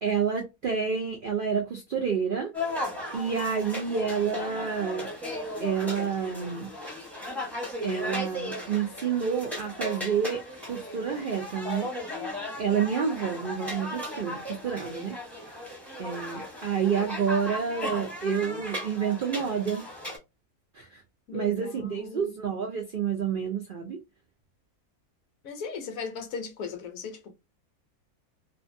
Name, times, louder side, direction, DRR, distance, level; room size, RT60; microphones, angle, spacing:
voice 1, 0.0-2.5 3.1-5.1 5.6-6.7 7.8-10.4 10.7-11.9 12.6-15.2 16.0-19.8 20.8-20.9 21.3-24.0, right 7 dB, 85° right, 0.4 m, -29 dB
sound 1, 2.5-20.2, left 1 dB, ahead, 0.6 m, -36 dB
voice 2, 21.3-22.3 25.4-27.3, left 5 dB, 70° left, 1.0 m, -37 dB
2.6 x 2.5 x 2.5 m
omnidirectional pair, 1.6 m